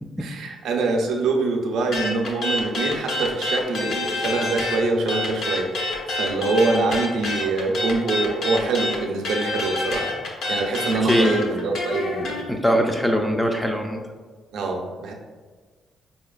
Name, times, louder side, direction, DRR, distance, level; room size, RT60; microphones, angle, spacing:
voice 1, 0.2-10.1 10.5-12.4 14.5-15.1, right 3 dB, 75° right, 2 dB, 0.5 m, -24 dB
sound 1, 1.9-4.8 5.1-12.4, left 2 dB, 65° left, 0.7 m, -27 dB
voice 2, 11.0-11.3 12.5-14.0, equal, 5° left, 2 dB, 0.3 m, -22 dB
4.3 x 2.8 x 2.3 m, 1.5 s
cardioid pair, 90°, 0 cm